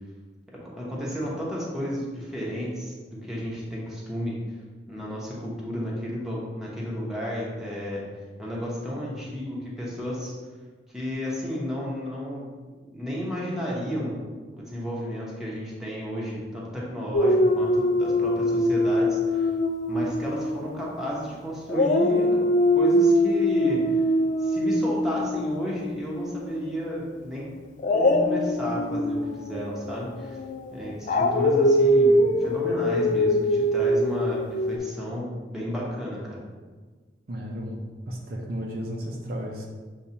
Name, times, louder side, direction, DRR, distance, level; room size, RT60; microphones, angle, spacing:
voice 1, 0.5-3.0 3.2-4.4 4.9-8.0 8.4-10.3 10.9-12.5 12.9-14.2 14.5-19.5 19.9-24.0 24.4-27.5 27.9-30.4 30.7-36.4, equal, 5° right, -6 dB, 0.9 m, -32 dB
Dog, 17.1-21.3 21.7-26.7 27.8-34.8, left 1 dB, 45° left, 0.3 m, -23 dB
voice 2, 37.3-39.7, equal, 60° right, -1 dB, 0.6 m, -34 dB
7.0 x 2.3 x 2.8 m, 1.4 s
head